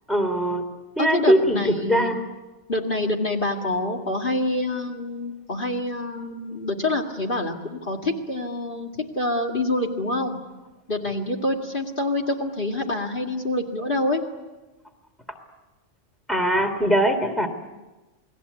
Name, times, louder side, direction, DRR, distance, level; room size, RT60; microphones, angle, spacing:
voice 1, 0.1-0.6 1.0-2.3 16.3-17.5, equal, ahead, 5 dB, 2.9 m, -21 dB
voice 2, 1.0-2.2 2.7-10.4 10.9-14.2, left 2 dB, 45° left, 3 dB, 2.4 m, -26 dB
29.0 x 21.0 x 8.3 m, 1.1 s
omnidirectional pair, 1.2 m